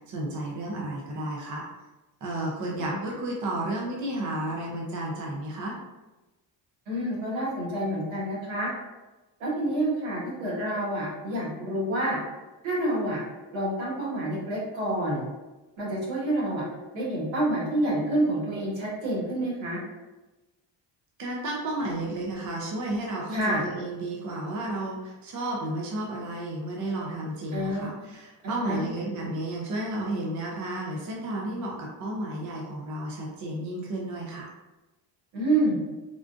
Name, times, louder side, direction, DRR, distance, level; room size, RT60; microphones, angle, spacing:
voice 1, 0.1-1.6 2.2-5.8 21.2-34.5, right 1 dB, 40° right, -2 dB, 0.5 m, -32 dB
voice 2, 2.6-3.0 6.9-8.7 9.4-12.2 12.6-13.2 13.5-15.2 15.8-16.6 16.9-19.8 23.3-23.6 27.5-28.1 28.6-28.8 35.3-35.8, right 1 dB, 85° right, -6 dB, 1.5 m, -28 dB
3.7 x 2.4 x 2.4 m, 1.1 s
cardioid pair, 165°, 45 cm